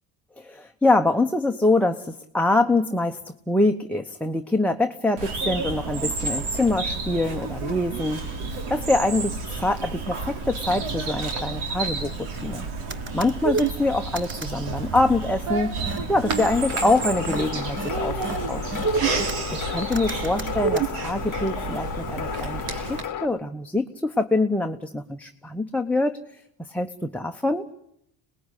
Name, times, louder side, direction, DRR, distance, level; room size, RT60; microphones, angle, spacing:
voice 1, 0.4-8.3 8.7-12.7 13.1-15.7 16.1-18.2 18.4-18.9 19.5-26.1 26.6-27.7, left 2 dB, 5° left, 3 dB, 1.0 m, -24 dB
Bird vocalization bird call bird song, 5.2-23.0, right 3 dB, 85° right, 3.4 m, -31 dB
sound 1, 12.9-13.7 14.1-14.5 15.9-16.0 16.3-16.5 16.8-16.9 17.3-17.4 17.8-17.9 18.2-18.4 18.7-19.4 19.9-20.9, right 5 dB, 25° right, 1.0 m, -26 dB
sound 2, 16.4-23.3, left 9 dB, 40° left, 1.1 m, -34 dB
26.5 x 19.5 x 10.0 m, 0.79 s
cardioid pair, 90°, 49 cm